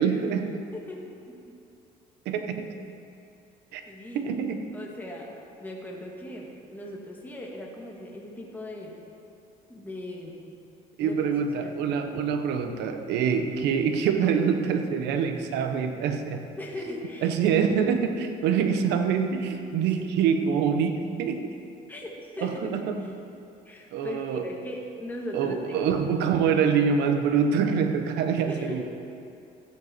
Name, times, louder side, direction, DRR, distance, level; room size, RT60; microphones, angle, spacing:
voice 1, 0.0-0.6 2.3-2.7 3.7-3.8 4.1-4.6 11.0-16.5 17.2-21.6 22.4-23.0 23.9-24.5 25.3-28.9, right 6 dB, 85° right, 6 dB, 1.0 m, -25 dB
voice 2, 0.7-1.4 3.9-4.4 4.7-5.3 5.6-8.9 9.7-10.4 11.0-11.3 11.6-11.8 16.6-17.3 21.9-22.1 22.4-23.1 23.7-26.1 28.5-28.9, left 1 dB, 10° left, -2 dB, 1.9 m, -38 dB
14.0 x 9.2 x 4.4 m, 2.6 s
cardioid pair, 110°, 17 cm